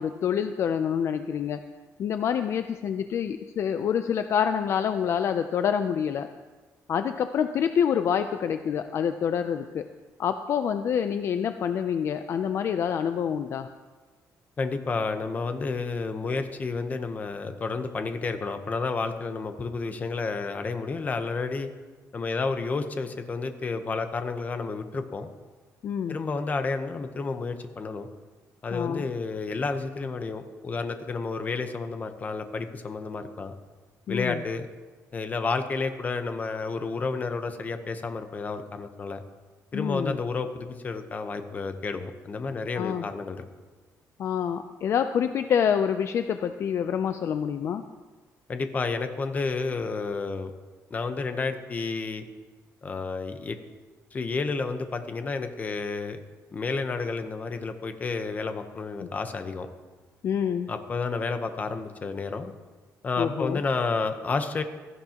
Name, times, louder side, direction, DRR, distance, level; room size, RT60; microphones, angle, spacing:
voice 1, 0.0-1.6 2.0-6.3 6.9-9.9 10.2-13.7 25.8-26.2 28.7-29.1 34.1-34.4 39.7-40.2 42.8-43.0 44.2-47.8 59.0-59.1 60.2-60.7 63.2-63.6, left 8 dB, 50° left, 9 dB, 0.4 m, -27 dB
voice 2, 14.6-21.7 22.1-25.3 26.1-28.1 28.6-33.5 34.1-34.7 35.1-39.2 39.7-43.5 48.5-50.5 50.9-52.3 52.8-53.6 54.1-56.2 56.5-59.7 60.7-62.5 63.0-64.6, left 4 dB, 25° left, 8 dB, 0.8 m, -31 dB
16.5 x 14.0 x 2.9 m, 1.3 s
cardioid pair, 160°, 6 cm